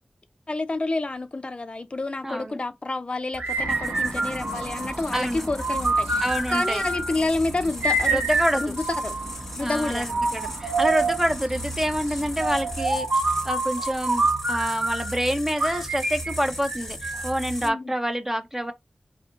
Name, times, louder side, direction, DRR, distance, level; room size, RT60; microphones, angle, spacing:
voice 1, 0.5-8.3 8.5-10.1 17.6-17.9, left 2 dB, 45° left, 0.4 m, -29 dB
voice 2, 2.2-2.6 5.1-5.5 6.2-6.8 8.1-8.8 9.6-18.7, equal, 15° right, 0.6 m, -27 dB
sound 1, 3.3-17.7, equal, 10° left, 0.9 m, -37 dB
sound 2, 3.4-5.0 5.6-7.2 7.8-9.4 10.1-11.3 12.4-15.2 15.6-17.4, right 2 dB, 75° right, 0.8 m, -26 dB
sound 3, 3.6-12.8, right 1 dB, 45° right, 0.9 m, -40 dB
2.8 x 2.5 x 3.6 m
wide cardioid pair, 65°, 3 cm